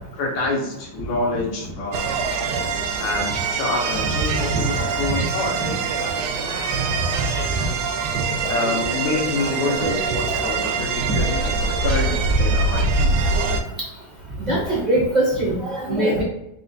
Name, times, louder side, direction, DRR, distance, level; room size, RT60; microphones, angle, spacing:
voice 1, 0.1-2.0 3.0-5.6 8.5-12.1 12.4-13.1, left 3 dB, 70° left, 0 dB, 1.6 m, -27 dB
sound 1, 1.9-13.6, right 3 dB, 85° right, 1.5 m, -23 dB
voice 2, 14.4-16.2, right 1 dB, 55° right, -5 dB, 0.4 m, -21 dB
4.2 x 2.4 x 3.9 m, 0.86 s
omnidirectional pair, 2.4 m